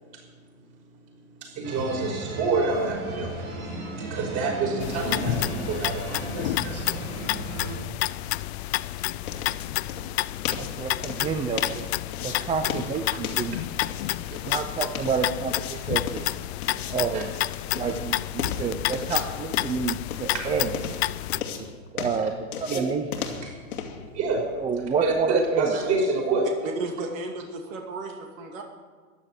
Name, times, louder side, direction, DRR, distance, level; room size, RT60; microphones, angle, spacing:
voice 1, 1.4-3.3 4.0-7.0 17.1-17.2 20.3-20.5 22.7-22.8 23.4-23.6 24.1-24.5 25.0-26.5, right 3 dB, 35° right, 0 dB, 5.4 m, -27 dB
sound 1, 1.6-7.8, right 2 dB, 85° right, 6.2 m, -35 dB
sound 2, 4.8-21.4, left 17 dB, 50° left, 0.5 m, -30 dB
sound 3, 8.1-25.9, left 6 dB, 85° left, 2.4 m, -38 dB
voice 2, 10.6-11.9 12.2-13.6 14.4-16.2 16.9-17.3 17.7-20.7 21.9-22.3 22.6-23.1 24.6-25.7, right 6 dB, 15° right, 7 dB, 0.6 m, -29 dB
voice 3, 26.6-28.6, right 3 dB, 65° right, 2 dB, 2.6 m, -34 dB
14.5 x 11.0 x 7.9 m, 1.5 s
hypercardioid pair, 135°, 43 cm